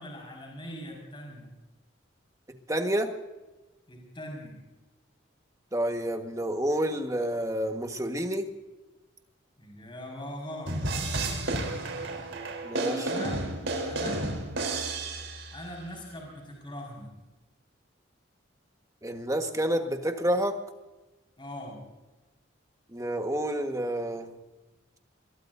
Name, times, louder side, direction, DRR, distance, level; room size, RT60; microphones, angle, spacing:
voice 1, 0.0-1.5 3.9-4.5 9.6-10.7 13.0-13.4 13.8-14.2 15.5-17.1 21.4-21.8, left 1 dB, 25° left, 0 dB, 5.1 m, -41 dB
voice 2, 2.7-3.1 5.7-8.5 12.6-13.1 19.0-20.6 22.9-24.3, right 1 dB, 15° right, 5 dB, 1.4 m, -29 dB
sound 1, 10.7-15.7, right 2 dB, 80° right, 3.8 m, -32 dB
23.0 x 22.5 x 2.7 m, 1.1 s
head